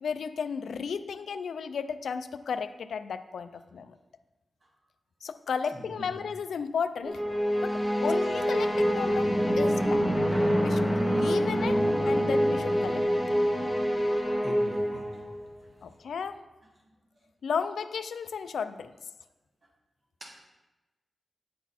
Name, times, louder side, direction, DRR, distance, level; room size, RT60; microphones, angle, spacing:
voice 1, 0.0-4.0 5.2-7.2 7.6-10.1 10.6-13.0 15.8-16.4 17.4-18.9, left 6 dB, 85° left, 11 dB, 0.3 m, -34 dB
sound 1, 7.0-15.5, equal, 20° right, 1.2 m, -26 dB
voice 2, 14.4-15.1 20.2-20.4, equal, 40° right, -2 dB, 1.5 m, -42 dB
9.2 x 4.0 x 4.2 m, 1.1 s
wide cardioid pair, 120°, 0 cm